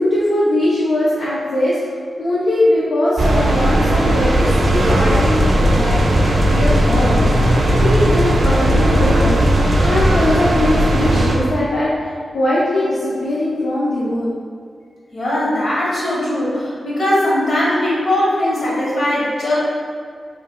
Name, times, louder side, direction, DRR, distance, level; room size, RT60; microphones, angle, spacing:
voice 1, 0.0-1.8 2.2-6.0 6.5-7.5 7.8-14.4, left 1 dB, 80° left, -9 dB, 0.6 m, -20 dB
sound 1, 3.2-11.4, right 1 dB, 55° right, 0.5 m, -16 dB
sound 2, 4.4-10.1, left 2 dB, 30° left, 0.4 m, -22 dB
voice 2, 15.1-19.5, left 1 dB, 65° left, -8 dB, 1.3 m, -19 dB
3.1 x 2.3 x 4.1 m, 2.1 s
wide cardioid pair, 140°, 0 cm